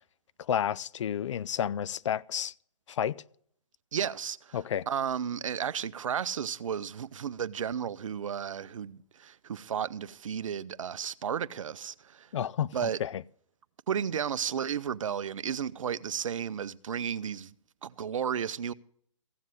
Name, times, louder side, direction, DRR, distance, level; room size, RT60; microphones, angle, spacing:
voice 1, 0.5-2.5 2.9-3.1 4.5-4.9 12.3-13.2, left 9 dB, 65° left, 0.4 m, -31 dB
voice 2, 3.9-4.6 4.9-12.3 12.6-13.0 13.9-17.5 17.8-18.7, right 8 dB, 70° right, 0.6 m, -33 dB
15.5 x 7.3 x 6.5 m
hypercardioid pair, 140°, 17 cm